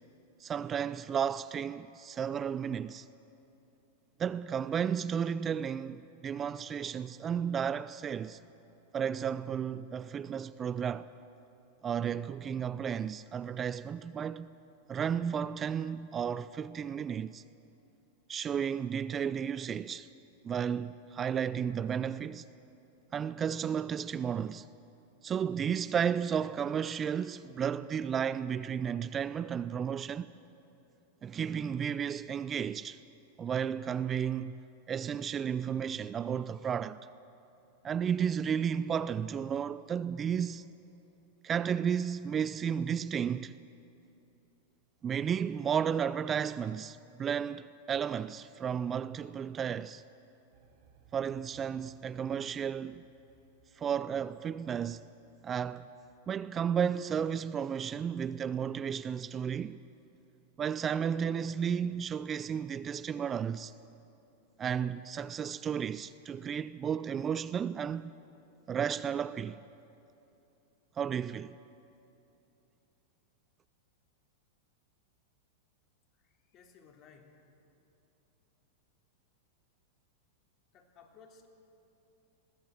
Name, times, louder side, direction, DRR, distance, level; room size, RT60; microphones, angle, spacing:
voice 1, 0.4-3.1 4.2-8.4 8.9-11.1 11.8-14.5 14.9-17.4 18.3-20.1 20.4-22.4 23.1-24.7 25.2-30.3 31.2-33.0 33.4-34.6 34.9-37.1 37.8-40.7 41.4-43.5 45.0-50.0 51.1-53.1 53.8-55.1 55.4-55.9 56.3-59.8 60.6-63.7 64.6-68.1 68.7-69.6 71.0-71.6, right 8 dB, 25° right, 0.4 m, -33 dB
sound 1, 50.5-56.3, right 5 dB, 55° right, 2.7 m, -65 dB
voice 2, 76.1-77.4 80.7-81.5, left 5 dB, 40° left, 2.9 m, -58 dB
21.0 x 16.0 x 7.9 m
hypercardioid pair, 100°, 0 cm